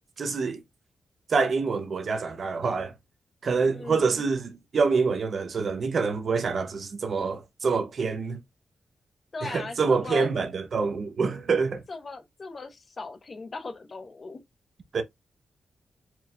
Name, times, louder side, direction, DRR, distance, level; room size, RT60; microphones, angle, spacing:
voice 1, 0.2-0.6 1.3-2.9 3.4-8.4 9.4-11.8 14.9-15.0, right 4 dB, 50° right, 0.7 m, -26 dB
voice 2, 3.7-4.2 9.3-10.3 11.9-14.4, left 3 dB, 35° left, 0.7 m, -38 dB
4.5 x 3.2 x 2.4 m
wide cardioid pair, 165°, 0 cm